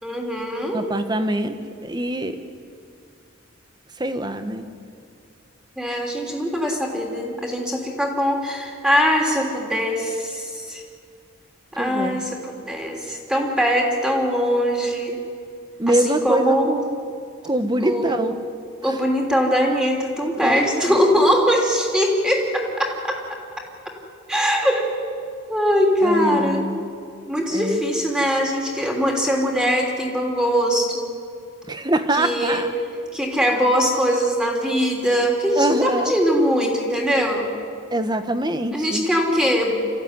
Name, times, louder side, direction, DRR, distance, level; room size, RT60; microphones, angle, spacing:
voice 1, 0.0-0.8 5.8-10.8 11.8-12.4 12.7-15.2 15.9-16.7 17.8-18.1 18.8-23.2 24.3-24.9 25.5-26.7 27.3-31.1 32.2-32.6 33.1-37.5 38.7-39.8, equal, 5° right, 0 dB, 3.2 m, -21 dB
voice 2, 0.7-2.4 4.0-4.6 11.7-12.3 15.8-17.0 17.4-18.4 20.4-21.2 26.0-26.9 27.5-27.8 31.7-32.7 35.6-36.1 37.9-39.1, right 1 dB, 20° right, 9 dB, 1.2 m, -24 dB
25.5 x 15.0 x 9.7 m, 2.3 s
head